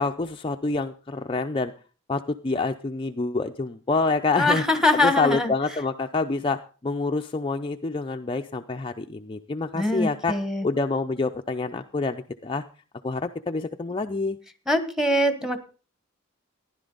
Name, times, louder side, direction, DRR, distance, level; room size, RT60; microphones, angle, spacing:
voice 1, 0.0-1.7 2.1-10.3 10.6-12.6 13.0-14.4, left 3 dB, 25° left, 5 dB, 0.5 m, -27 dB
voice 2, 4.4-5.5 9.7-10.6 14.7-15.6, left 1 dB, 5° right, 8 dB, 1.3 m, -23 dB
15.0 x 11.0 x 3.9 m, 0.36 s
head